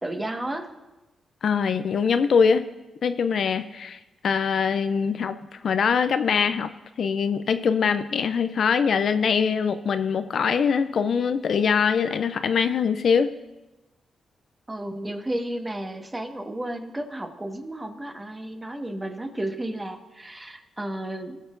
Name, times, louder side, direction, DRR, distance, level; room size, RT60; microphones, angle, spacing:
voice 1, 0.0-0.7 14.7-21.4, right 1 dB, 20° right, 4 dB, 1.4 m, -32 dB
voice 2, 1.4-2.6 3.0-5.4 5.6-6.7 7.0-13.3, left 6 dB, 65° left, 11 dB, 0.4 m, -23 dB
18.0 x 6.4 x 2.6 m, 1.0 s
supercardioid pair, 55°, 0 cm